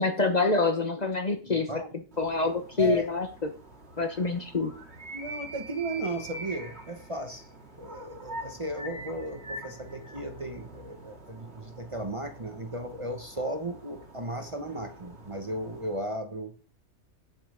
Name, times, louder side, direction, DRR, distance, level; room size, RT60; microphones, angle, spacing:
voice 1, 0.0-1.7 2.2-3.5 4.0-4.7, left 3 dB, 35° left, 7 dB, 1.1 m, -26 dB
voice 2, 1.4-1.9 2.8-3.0 5.1-7.5 7.8-16.6, right 1 dB, 30° right, 6 dB, 1.0 m, -35 dB
sound 1, 2.1-16.1, right 1 dB, 60° right, 2.4 m, -45 dB
9.5 x 7.8 x 4.9 m, 0.39 s
omnidirectional pair, 1.2 m